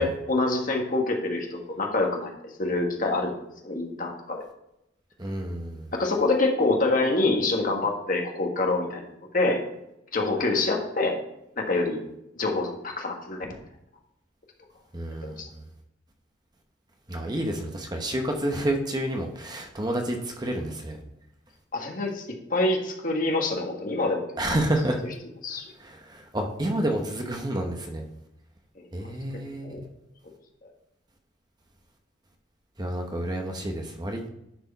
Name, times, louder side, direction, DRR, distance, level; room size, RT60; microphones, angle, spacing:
voice 1, 0.0-2.3 2.6-3.4 3.6-4.4 5.9-9.6 10.1-11.2 11.6-12.0 12.3-13.5 15.2-15.5 21.7-24.2 24.5-24.6 25.4-25.6 29.6-29.8, left 2 dB, 45° left, 1 dB, 1.5 m, -26 dB
voice 2, 5.2-5.8 14.9-15.4 17.1-21.0 24.4-25.0 25.8-28.0 28.9-29.8 32.8-34.3, right 1 dB, 20° right, 3 dB, 1.0 m, -29 dB
10.0 x 4.8 x 4.1 m, 0.83 s
head